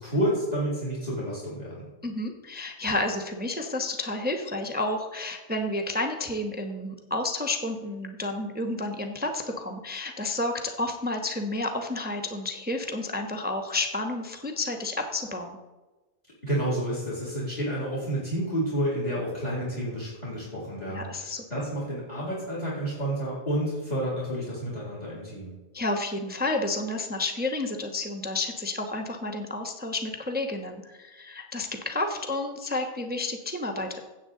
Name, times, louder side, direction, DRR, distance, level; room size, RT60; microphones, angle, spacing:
voice 1, 0.0-1.9 16.4-25.6, right 1 dB, 25° left, -6 dB, 2.7 m, -30 dB
voice 2, 2.0-15.6 20.9-21.4 25.7-34.0, left 2 dB, 10° right, 4 dB, 0.6 m, -31 dB
16.0 x 7.8 x 3.8 m, 1.2 s
omnidirectional pair, 1.6 m